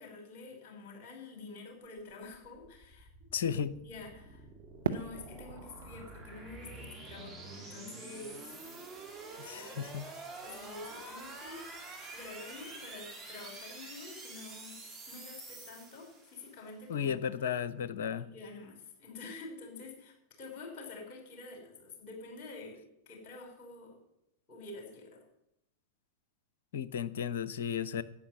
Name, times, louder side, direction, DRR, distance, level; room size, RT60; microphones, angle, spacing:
voice 1, 0.0-3.1 3.4-4.5 4.8-8.6 9.5-9.9 10.2-11.7 12.1-14.8 15.1-17.5 18.2-24.0 24.5-25.2, left 3 dB, 40° left, 2 dB, 5.8 m, -48 dB
sound 1, 2.0-16.6, right 3 dB, 10° right, 3.4 m, -48 dB
voice 2, 3.3-3.7 9.4-10.1 16.9-18.3 26.7-28.0, left 8 dB, 60° left, 16 dB, 0.8 m, -34 dB
Fireworks, 4.8-7.9, right 6 dB, 65° right, 0.9 m, -40 dB
11.5 x 9.0 x 9.3 m, 0.82 s
figure-of-eight pair, 90°, 0 cm